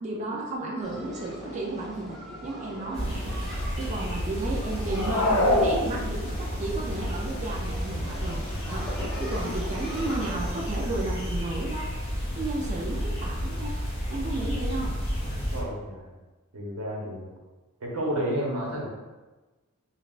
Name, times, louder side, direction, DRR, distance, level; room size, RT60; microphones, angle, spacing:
voice 1, 0.0-3.4 3.8-8.9 9.2-11.9 12.4-13.8 14.1-15.0, right 2 dB, 35° right, -2 dB, 0.4 m, -33 dB
sound 1, 0.8-10.7, equal, ahead, 0.8 m, -41 dB
sound 2, 2.9-15.6, equal, 30° left, 1.0 m, -31 dB
sound 3, 4.8-6.5, left 1 dB, 65° left, 0.6 m, -24 dB
voice 2, 15.5-16.2 16.5-17.3 17.8-18.9, equal, 85° right, -2 dB, 0.9 m, -31 dB
5.7 x 2.3 x 2.4 m, 1.2 s
head